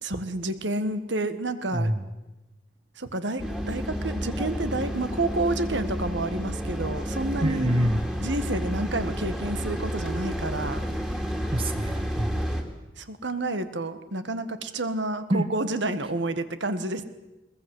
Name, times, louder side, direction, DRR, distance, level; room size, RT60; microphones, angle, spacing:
voice 1, 0.0-2.0 3.0-7.7 8.2-10.8 13.0-17.0, right 2 dB, 75° right, 10 dB, 1.7 m, -29 dB
voice 2, 1.7-2.0 7.4-8.0 11.5-12.5 15.3-15.5, equal, 30° right, 8 dB, 1.0 m, -26 dB
sound 1, 3.4-12.6, equal, 5° right, 2.4 m, -30 dB
21.5 x 21.0 x 7.9 m, 1.0 s
head